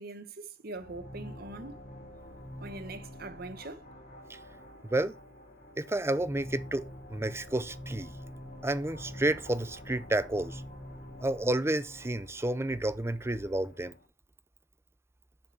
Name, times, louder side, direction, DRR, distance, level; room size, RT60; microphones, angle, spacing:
voice 1, 0.0-1.8 2.6-3.8, right 2 dB, 55° right, 1.1 m, -42 dB
sound 1, 0.7-14.1, left 1 dB, 55° left, 3.7 m, -47 dB
voice 2, 5.8-8.1 8.6-10.6 11.2-13.9, right 1 dB, 15° right, 0.6 m, -30 dB
7.3 x 5.7 x 7.2 m
head